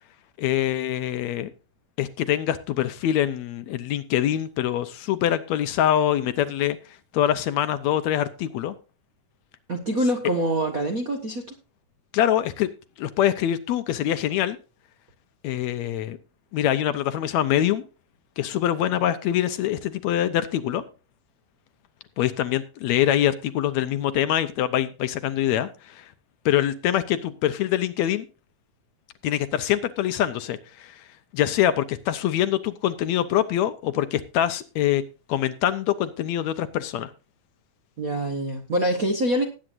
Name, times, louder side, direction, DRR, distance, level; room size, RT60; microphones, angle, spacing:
voice 1, 0.4-1.5 2.0-6.8 7.1-8.7 12.1-12.7 13.0-14.6 15.4-16.2 16.5-17.8 18.4-20.8 22.2-26.1 26.5-28.3 29.2-31.0 31.3-35.0 35.3-37.1, left 11 dB, 75° left, 12 dB, 1.9 m, -24 dB
voice 2, 9.7-11.4 38.0-39.4, right 1 dB, 50° right, 3 dB, 1.0 m, -25 dB
19.0 x 8.9 x 2.6 m, 0.32 s
omnidirectional pair, 3.4 m